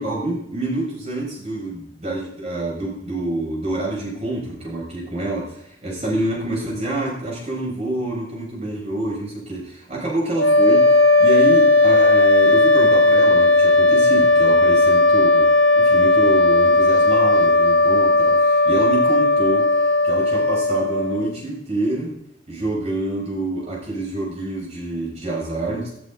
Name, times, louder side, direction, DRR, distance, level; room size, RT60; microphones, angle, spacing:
voice 1, 0.0-15.5 15.8-19.6 20.0-22.1 22.5-25.9, right 2 dB, 35° right, -4 dB, 7.3 m, -27 dB
sound 1, 10.4-21.3, left 2 dB, 80° left, 3.2 m, -15 dB
19.5 x 11.0 x 4.1 m, 0.73 s
head